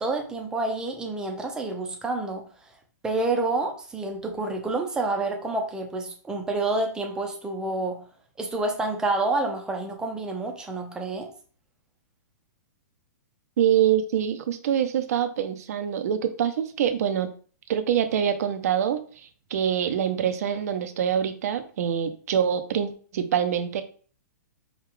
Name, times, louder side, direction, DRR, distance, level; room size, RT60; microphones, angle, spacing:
voice 1, 0.0-2.4 3.0-8.0 8.4-11.3, right 2 dB, 5° right, 2 dB, 0.7 m, -28 dB
voice 2, 13.6-17.3 17.7-19.0 19.5-23.8, right 9 dB, 60° right, 8 dB, 0.6 m, -25 dB
4.8 x 2.4 x 3.7 m, 0.43 s
hypercardioid pair, 150°, 10 cm